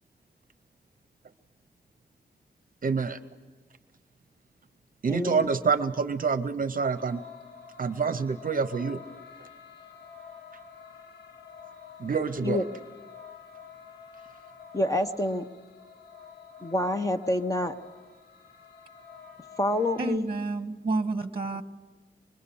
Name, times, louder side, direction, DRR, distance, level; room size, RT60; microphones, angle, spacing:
voice 1, 2.8-3.2 5.0-7.2 7.8-9.0 12.0-12.6, right 5 dB, 50° right, 11 dB, 0.7 m, -27 dB
voice 2, 5.1-5.5 12.4-12.6 14.7-15.4 16.6-17.7 19.6-20.3, left 1 dB, 20° left, 7 dB, 0.9 m, -27 dB
sound 1, 6.9-20.2, left 6 dB, 90° left, 1.5 m, -49 dB
voice 3, 20.0-21.6, right 3 dB, 30° right, 8 dB, 1.2 m, -30 dB
25.0 x 22.0 x 7.0 m, 1.3 s
wide cardioid pair, 105°, 18 cm